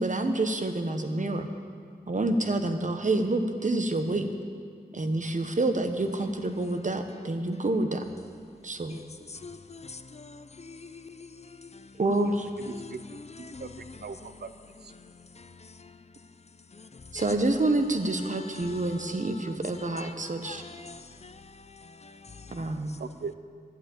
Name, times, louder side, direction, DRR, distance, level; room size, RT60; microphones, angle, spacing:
voice 1, 0.0-1.5 2.1-4.3 4.9-8.1 8.6-9.0 12.0-12.3 17.1-20.6 22.5-23.0, right 2 dB, 50° right, 1.0 m, -28 dB
voice 2, 9.4-11.8 12.8-14.0 15.4-15.5 15.8-15.9 16.8-17.0 18.6-18.7 19.9-20.1 20.4-22.6, left 4 dB, 40° left, 0.5 m, -45 dB
voice 3, 12.7-14.5 14.8-14.9 23.0-23.3, right 5 dB, 75° right, 0.5 m, -40 dB
11.5 x 7.8 x 8.6 m
wide cardioid pair, 80°, 17 cm